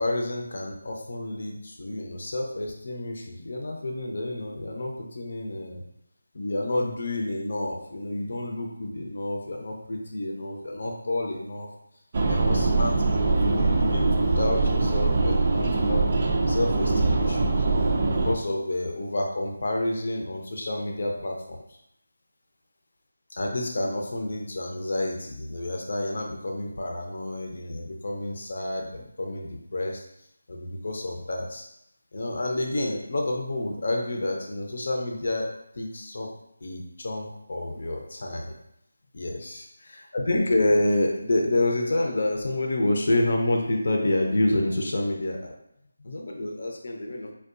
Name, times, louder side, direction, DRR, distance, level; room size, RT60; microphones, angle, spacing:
voice 1, 0.0-5.8 6.3-11.7 12.3-16.0 16.5-17.7 18.1-21.6 23.3-30.0 30.5-31.6 32.1-35.5 35.8-36.3 36.6-38.5 39.1-39.6 40.1-45.5 46.0-47.3, left 1 dB, 60° left, 1 dB, 0.6 m, -29 dB
sound 1, 12.1-18.4, right 3 dB, 40° right, 0.4 m, -23 dB
4.5 x 2.3 x 2.5 m, 0.77 s
figure-of-eight pair, 170°, 0 cm